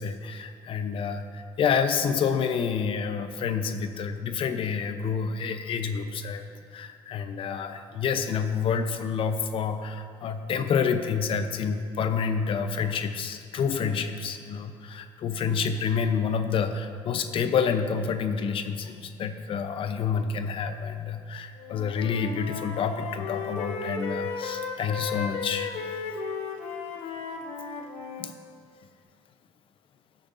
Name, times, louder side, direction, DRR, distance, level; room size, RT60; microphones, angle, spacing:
voice 1, 0.0-6.5 6.7-25.8 28.2-28.3, left 6 dB, 55° left, 8 dB, 0.7 m, -28 dB
Wind instrument woodwind instrument, 21.6-28.3, left 5 dB, 70° left, 1.0 m, -35 dB
16.5 x 6.5 x 2.7 m, 2.2 s
supercardioid pair, 80°, 11 cm